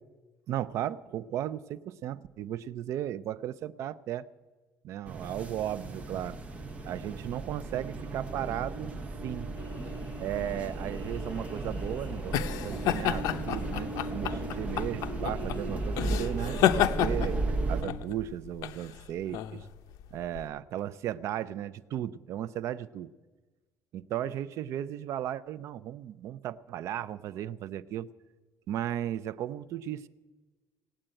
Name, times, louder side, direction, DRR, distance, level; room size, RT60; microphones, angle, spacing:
voice 1, 0.5-4.3 4.8-6.4 6.8-8.9 9.2-9.5 10.2-12.4 12.6-17.4 17.7-19.7 20.1-23.1 23.9-28.1 28.7-30.1, right 11 dB, 55° right, 16 dB, 0.5 m, -35 dB
sound 1, 5.1-17.8, right 2 dB, 20° right, 1.0 m, -35 dB
sound 2, 9.5-16.4, left 2 dB, 45° left, 6.9 m, -53 dB
sound 3, 11.3-20.5, left 11 dB, 80° left, 0.7 m, -31 dB
17.5 x 8.7 x 8.9 m, 1.3 s
cardioid pair, 180°, 6 cm